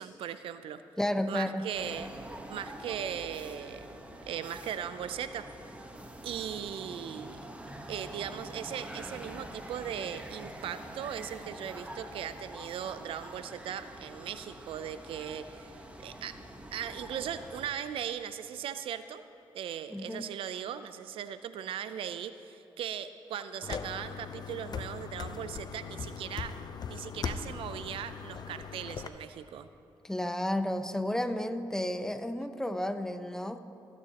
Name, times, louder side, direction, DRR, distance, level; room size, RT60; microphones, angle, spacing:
voice 1, 0.0-0.8 1.3-2.1 2.5-3.9 4.3-5.5 6.2-7.4 7.9-16.3 16.7-19.2 19.5-26.5 26.9-29.7, right 9 dB, 80° right, 12 dB, 0.4 m, -38 dB
voice 2, 1.0-1.6 19.9-20.2 30.0-33.6, left 1 dB, 5° left, 9 dB, 0.7 m, -32 dB
sound 1, 1.7-17.7, right 1 dB, 15° right, 1.1 m, -46 dB
sound 2, 23.6-29.1, left 6 dB, 50° left, 0.6 m, -39 dB
21.5 x 9.3 x 2.9 m, 2.7 s
cardioid pair, 80°, 9 cm